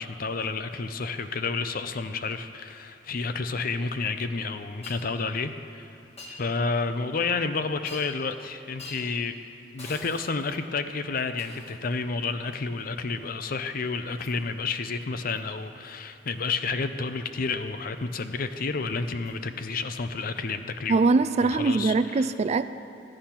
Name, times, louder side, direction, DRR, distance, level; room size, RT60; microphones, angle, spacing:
voice 1, 0.0-5.9 6.3-9.3 9.7-21.1 21.4-22.3, left 4 dB, 55° left, 9 dB, 0.6 m, -30 dB
Shatter, 4.8-5.0 6.2-6.4 7.9-8.3 8.8-9.1 9.8-10.6 11.4-11.8 14.2-14.4 15.3-15.5 16.3-16.4 19.3-19.4 20.4-20.5, left 2 dB, 35° left, 1.5 m, -45 dB
voice 2, 20.9-22.7, right 3 dB, 40° right, 13 dB, 0.3 m, -22 dB
13.0 x 8.7 x 5.8 m, 2.9 s
head